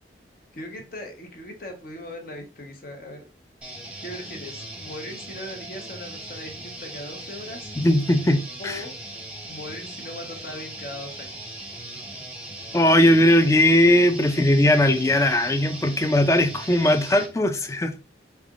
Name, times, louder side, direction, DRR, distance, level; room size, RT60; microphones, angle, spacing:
voice 1, 0.5-3.2 4.0-7.7 8.6-9.0 9.5-11.5, left 1 dB, 50° left, 0.9 m, -39 dB
sound 1, 3.6-17.3, right 1 dB, 5° right, 0.8 m, -39 dB
voice 2, 7.8-8.8 12.7-18.0, left 1 dB, 15° left, 0.4 m, -19 dB
4.5 x 3.4 x 2.4 m
head